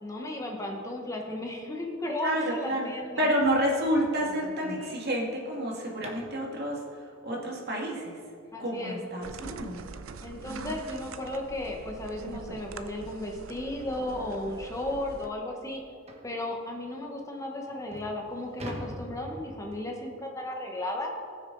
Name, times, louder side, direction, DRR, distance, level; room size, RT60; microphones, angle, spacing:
voice 1, 0.0-3.3 8.5-9.0 10.2-15.8 16.2-21.1, left 1 dB, 15° left, 1 dB, 1.0 m, -34 dB
voice 2, 2.2-2.9 3.2-8.2 8.6-9.8 10.5-10.7, equal, 50° right, -1 dB, 2.0 m, -29 dB
sound 1, 3.4-6.5 9.3-9.4 9.9-10.0 10.4-10.5 11.0-11.1 12.2-12.3 12.7-12.9 13.5-13.6 14.0-14.1 14.6-14.7 16.1-16.4 17.1-17.2 17.7-20.0, equal, 30° right, 1.2 m, -44 dB
sound 2, 9.2-15.3, right 4 dB, 80° right, 0.6 m, -44 dB
19.0 x 6.6 x 3.9 m, 2.4 s
head